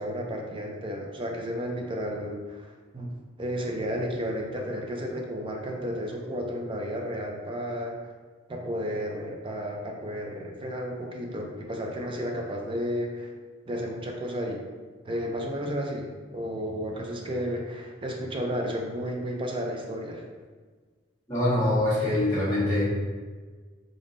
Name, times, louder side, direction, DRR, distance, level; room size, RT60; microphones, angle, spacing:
voice 1, 0.0-7.9 8.5-13.3 13.7-14.6 15.0-20.2, equal, 25° right, 1 dB, 0.5 m, -32 dB
voice 2, 21.3-22.8, left 1 dB, 15° left, -14 dB, 1.1 m, -24 dB
3.8 x 3.6 x 2.6 m, 1.5 s
head